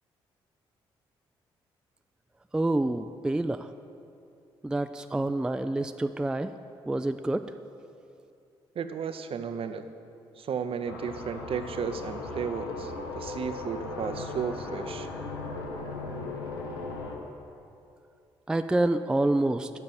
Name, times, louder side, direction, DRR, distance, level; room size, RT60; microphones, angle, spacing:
voice 1, 2.5-3.7 4.6-6.5 6.9-7.5 18.5-19.7, right 2 dB, 5° right, 9 dB, 0.3 m, -27 dB
voice 2, 8.8-9.9 10.4-15.1, right 6 dB, 50° right, 10 dB, 0.6 m, -34 dB
sound 1, 10.8-17.2, left 3 dB, 85° left, 0.8 m, -37 dB
7.6 x 5.7 x 7.7 m, 2.6 s
figure-of-eight pair, 40°, 13 cm